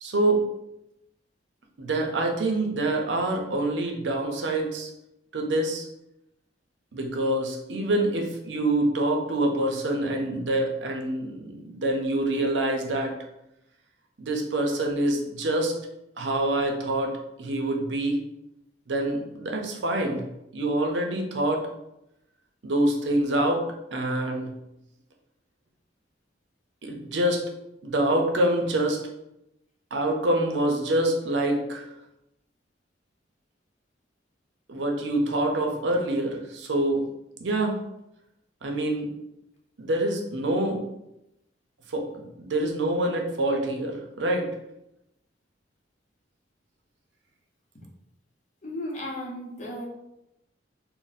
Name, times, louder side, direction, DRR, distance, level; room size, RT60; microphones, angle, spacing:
voice 1, 0.0-0.5 1.8-4.9 5.3-5.9 6.9-13.1 14.2-15.7 16.2-17.1 17.4-18.2 18.9-21.7 22.6-23.6 23.9-24.5 26.8-27.4 27.8-29.0 29.9-31.8 34.7-37.0 37.4-37.8 38.6-39.1 39.8-40.8 41.9-44.5, right 1 dB, 85° right, 2 dB, 0.6 m, -26 dB
voice 2, 48.6-49.8, left 1 dB, 40° left, -2 dB, 0.7 m, -34 dB
2.5 x 2.1 x 3.9 m, 0.86 s
head